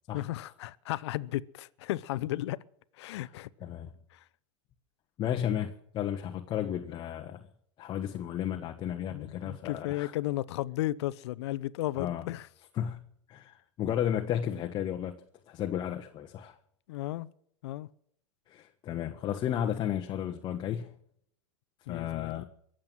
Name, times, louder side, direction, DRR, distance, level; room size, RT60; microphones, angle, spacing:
voice 1, 0.1-2.6 3.0-3.5 9.1-12.5 16.9-17.3 17.6-17.9 21.9-22.4, left 16 dB, 65° left, 0.7 m, -34 dB
voice 2, 3.6-3.9 5.2-7.5 7.8-10.1 12.0-12.3 12.7-13.0 13.3-15.1 15.5-16.6 18.5-20.9 21.9-22.4, left 10 dB, 30° left, 1.1 m, -33 dB
22.5 x 7.8 x 7.6 m
hypercardioid pair, 130°, 15 cm